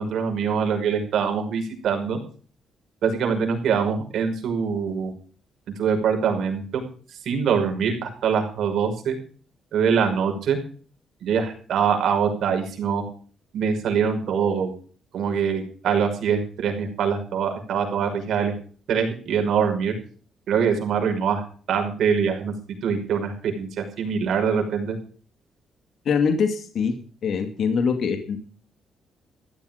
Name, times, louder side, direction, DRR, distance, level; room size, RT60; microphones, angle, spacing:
voice 1, 0.0-2.2 3.0-5.1 5.8-6.8 7.3-9.2 9.7-10.6 11.2-13.0 13.5-14.7 15.1-18.5 18.9-19.9 20.5-21.4 21.7-22.5 22.8-25.0, right 6 dB, 70° right, 4 dB, 5.7 m, -23 dB
voice 2, 26.1-27.0 27.2-28.4, left 6 dB, 60° left, 7 dB, 2.3 m, -23 dB
15.0 x 12.5 x 5.2 m, 0.43 s
cardioid pair, 135°, 0 cm